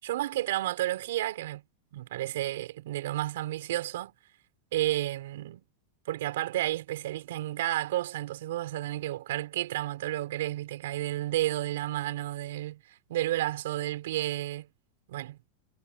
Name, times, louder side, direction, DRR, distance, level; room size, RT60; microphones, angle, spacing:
voice 1, 0.0-1.6 1.9-4.1 4.7-5.6 6.1-12.8 13.1-14.7 15.1-15.4, right 15 dB, 75° right, 5.6 m, -31 dB
supercardioid pair, 160°, 0 cm